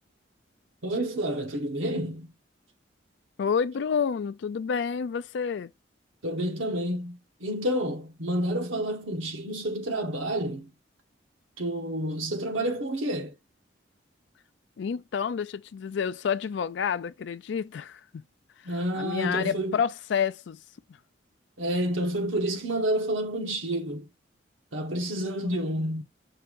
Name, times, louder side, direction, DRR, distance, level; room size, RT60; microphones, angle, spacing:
voice 1, 0.8-2.3 6.2-10.7 11.6-13.3 18.6-19.7 21.6-24.1 24.7-26.0, right 1 dB, 90° right, 1.1 m, -29 dB
voice 2, 3.4-5.7 14.8-18.2 18.6-20.6 25.4-25.7, left 7 dB, 65° left, 0.3 m, -29 dB
5.6 x 2.5 x 3.6 m
head